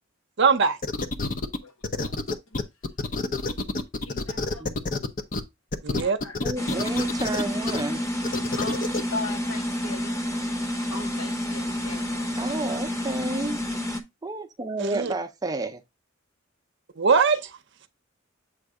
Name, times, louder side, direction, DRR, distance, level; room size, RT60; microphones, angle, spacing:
voice 1, 0.4-0.8 5.8-6.2 14.8-15.1 17.0-17.5, right 5 dB, 60° right, 0.7 m, -21 dB
sound 1, 0.8-1.6 1.8-5.4 5.7-7.8 8.2-9.0, left 3 dB, 40° left, 0.7 m, -28 dB
voice 2, 4.0-4.6 6.0-6.4 8.6-10.2 10.9-12.5, left 3 dB, 85° left, 1.1 m, -38 dB
voice 3, 6.4-8.0 12.4-13.6 14.2-15.8, right 2 dB, 20° right, 0.5 m, -31 dB
sound 2, 6.6-14.0, left 1 dB, 15° left, 0.9 m, -29 dB
7.8 x 2.6 x 4.7 m
head